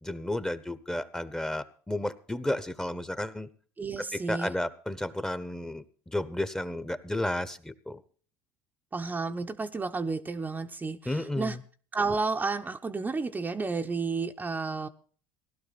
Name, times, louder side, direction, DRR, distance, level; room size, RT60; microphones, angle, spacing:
voice 1, 0.0-3.5 4.0-8.0 11.0-11.6, left 1 dB, 5° left, 14 dB, 1.0 m, -32 dB
voice 2, 3.8-4.5 8.9-11.6 11.9-14.9, right 4 dB, 20° right, 5 dB, 0.8 m, -31 dB
16.5 x 11.5 x 4.1 m, 0.42 s
supercardioid pair, 90°, 9 cm